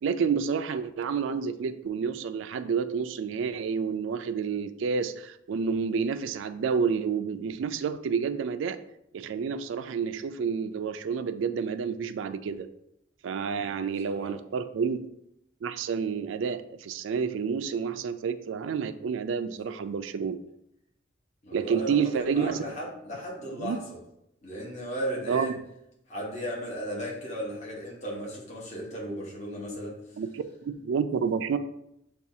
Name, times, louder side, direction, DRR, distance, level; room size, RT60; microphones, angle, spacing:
voice 1, 0.0-8.8 9.1-12.7 13.2-15.0 15.6-20.4 21.5-22.6 23.6-23.8 25.3-25.5 30.2-31.6, right 6 dB, 80° right, 10 dB, 0.3 m, -29 dB
voice 2, 13.5-14.3 21.4-23.8 24.4-25.6 26.1-30.0, equal, 40° left, -4 dB, 1.0 m, -36 dB
6.9 x 2.3 x 2.7 m, 0.80 s
head